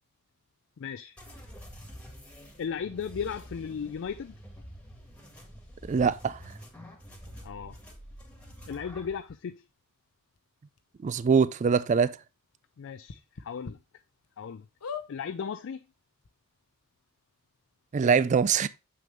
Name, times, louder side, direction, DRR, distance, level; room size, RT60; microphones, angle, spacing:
voice 1, 0.8-1.2 2.6-4.4 7.4-7.8 8.7-9.6 12.8-13.8 14.4-14.7 15.1-15.8, left 7 dB, 55° left, 0.4 m, -36 dB
sound 1, 1.2-9.2, equal, 5° left, 1.8 m, -47 dB
voice 2, 5.8-6.4 11.0-12.2 17.9-18.7, right 6 dB, 30° right, 0.3 m, -23 dB
sound 2, 9.3-9.4 10.3-10.4 10.8-10.9 11.3-11.4 13.0-13.7 14.2-14.3 14.8-15.1 15.9-16.0 16.2-16.3, left 6 dB, 85° left, 0.8 m, -39 dB
7.0 x 6.3 x 3.3 m
head